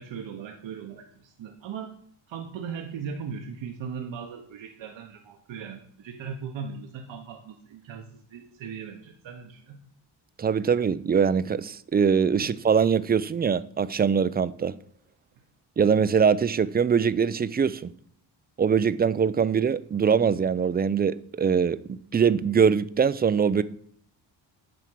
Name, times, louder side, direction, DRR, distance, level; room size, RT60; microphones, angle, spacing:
voice 1, 0.0-1.9 2.3-9.8 12.4-12.5, right 6 dB, 70° right, 1.0 m, -38 dB
voice 2, 10.4-14.7 15.8-17.9 18.6-23.6, right 6 dB, 25° right, 0.3 m, -23 dB
9.1 x 3.5 x 6.1 m
cardioid pair, 75°, 47 cm